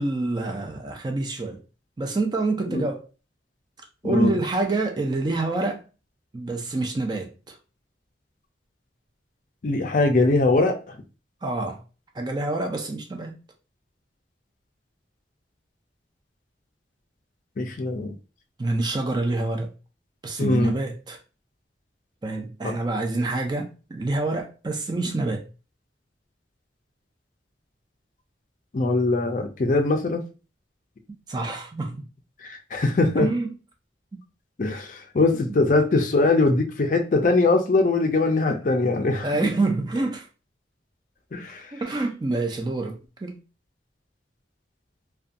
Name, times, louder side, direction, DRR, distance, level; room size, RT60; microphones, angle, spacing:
voice 1, 0.0-1.6 2.0-3.0 4.0-5.8 6.3-7.6 11.4-11.8 12.1-13.3 18.6-19.7 20.2-21.2 22.2-25.4 31.3-32.1 33.2-33.5 35.5-35.6 39.2-40.3 41.7-43.4, right 2 dB, 25° right, 0.4 m, -27 dB
voice 2, 4.0-4.4 9.6-11.0 17.6-18.1 20.4-20.7 22.6-22.7 28.7-30.2 32.4-33.3 34.6-39.3 41.3-41.7, left 3 dB, 45° left, 0.4 m, -22 dB
2.6 x 2.2 x 2.4 m
head